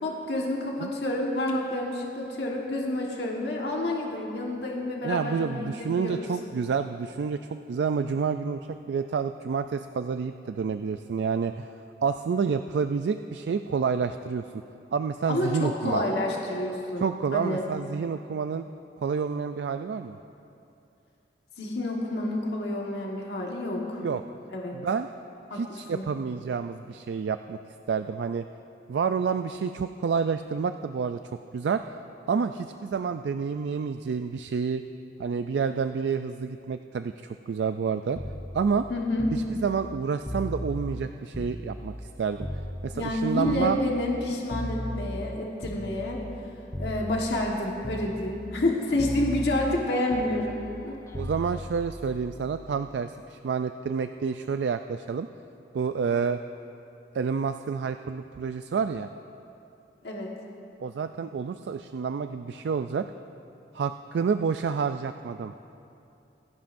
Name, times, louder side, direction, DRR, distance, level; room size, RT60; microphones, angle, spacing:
voice 1, 0.0-6.3 15.3-17.1 17.3-17.6 21.6-24.0 24.5-24.8 25.5-26.0 38.9-39.3 42.9-46.2 46.8-50.6 50.8-51.0 60.0-60.3, left 1 dB, 75° left, -1 dB, 1.4 m, -29 dB
voice 2, 5.0-11.7 12.0-14.4 14.9-16.0 17.0-18.6 19.0-20.2 24.0-24.2 24.7-25.1 25.5-27.6 27.9-28.4 28.9-31.2 31.5-31.8 32.3-34.8 35.2-38.2 38.5-38.9 39.3-43.8 51.1-55.3 55.7-56.4 57.1-59.1 60.8-63.1 63.7-65.5, right 6 dB, 80° right, 9 dB, 0.3 m, -29 dB
sound 1, 38.2-42.1 42.4-46.4 46.7-47.6 47.8-48.7 49.0-53.0 54.2-54.4, left 1 dB, 15° left, 0.6 m, -37 dB
25.5 x 11.5 x 2.6 m, 2.7 s
head